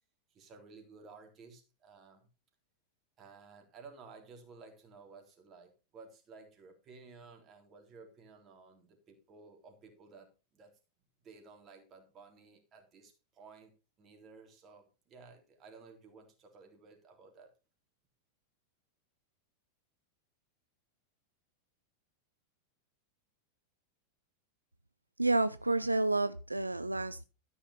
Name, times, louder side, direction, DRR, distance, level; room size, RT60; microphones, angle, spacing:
voice 1, 0.3-2.3 3.2-10.7 11.2-13.7 14.0-17.5, right 4 dB, 30° right, 3 dB, 3.4 m, -55 dB
voice 2, 25.2-27.2, right 2 dB, 85° right, 13 dB, 0.4 m, -30 dB
13.0 x 5.7 x 5.5 m, 0.31 s
figure-of-eight pair, 90°, 0 cm